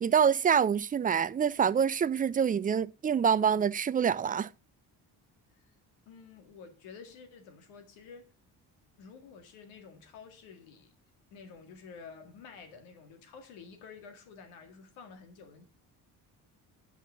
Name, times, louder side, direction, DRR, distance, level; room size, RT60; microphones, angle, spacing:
voice 1, 0.0-4.5, right 7 dB, 20° right, 0.4 m, -26 dB
voice 2, 6.1-8.3 9.0-10.9 11.3-15.6, left 5 dB, 70° left, 2.0 m, -50 dB
9.8 x 6.1 x 5.9 m
hypercardioid pair, 50°, 49 cm